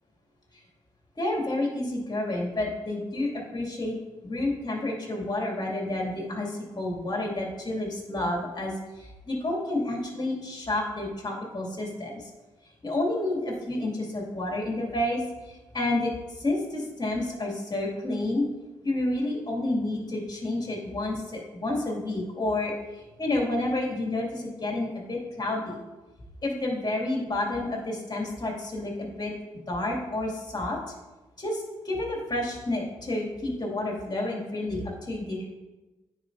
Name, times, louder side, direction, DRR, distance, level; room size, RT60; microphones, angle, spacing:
voice 1, 1.2-4.0 4.2-12.3 12.8-18.4 18.8-25.8 26.4-29.3 29.7-30.9 31.4-35.5, left 2 dB, 35° left, -1 dB, 2.3 m, -30 dB
9.6 x 4.8 x 2.7 m, 1.2 s
hypercardioid pair, 40°, 12 cm